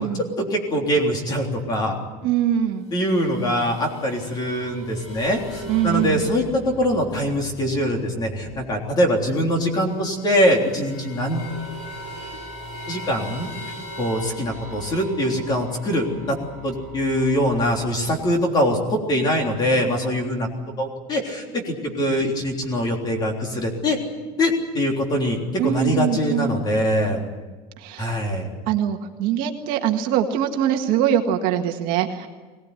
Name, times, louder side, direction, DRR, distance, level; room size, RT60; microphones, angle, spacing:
voice 1, 0.0-2.0 2.9-11.5 12.9-13.5 14.0-16.4 16.6-20.5 20.8-24.0 24.4-27.2 28.0-28.5, equal, 20° left, 2 dB, 3.5 m, -23 dB
voice 2, 2.2-2.9 5.7-6.2 25.6-26.5 27.8-28.2 28.7-32.3, right 10 dB, 45° right, 4 dB, 1.8 m, -23 dB
sound 1, 2.9-8.7 8.9-9.0 9.2-18.2, equal, 35° left, 7.0 m, -39 dB
22.5 x 19.0 x 9.7 m, 1.3 s
cardioid pair, 180°, 20 cm